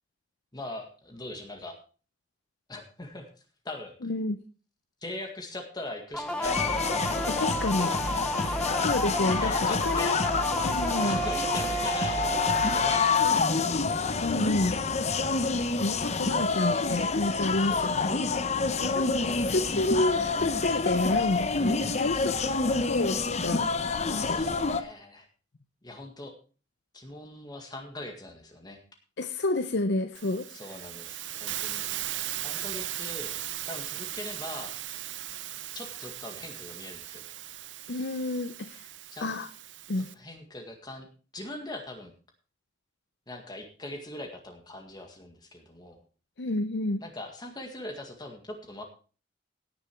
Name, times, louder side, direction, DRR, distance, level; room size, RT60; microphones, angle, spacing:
voice 1, 0.5-1.8 2.7-3.3 3.6-3.9 5.0-8.8 9.4-10.1 11.0-12.4 12.7-13.0 13.3-13.5 14.1-14.6 17.6-18.1 23.9-25.3 25.8-26.3 26.9-28.8 30.5-31.9 32.4-33.3 33.7-34.7 35.7-37.2 39.1-39.3 40.1-41.1 41.3-42.1 43.3-46.0 47.0-48.8, left 1 dB, 25° left, 3 dB, 1.8 m, -41 dB
voice 2, 4.0-4.4 7.3-7.9 8.8-10.2 10.6-11.2 14.2-14.8 15.4-22.4 22.7-23.7 24.1-24.4 29.2-30.5 37.9-38.9 39.2-39.5 39.9-40.1 46.4-47.0, left 2 dB, 65° left, 8 dB, 0.7 m, -30 dB
sound 1, 6.1-13.7, right 1 dB, 5° left, 0.9 m, -32 dB
sound 2, 6.4-24.8, left 4 dB, 40° left, 0.9 m, -27 dB
Hiss, 30.1-40.1, right 13 dB, 85° right, 0.8 m, -38 dB
17.0 x 6.9 x 4.5 m, 0.37 s
head